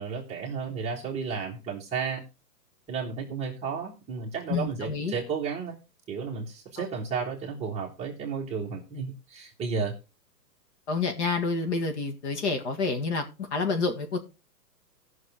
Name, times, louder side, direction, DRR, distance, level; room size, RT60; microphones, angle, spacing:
voice 1, 0.0-2.2 2.9-5.8 6.1-9.9, right 5 dB, 15° right, 1.6 m, -33 dB
voice 2, 4.5-5.1 10.9-13.2 13.5-14.2, left 4 dB, 40° left, 1.9 m, -28 dB
17.0 x 6.2 x 3.6 m
hypercardioid pair, 155°, 50 cm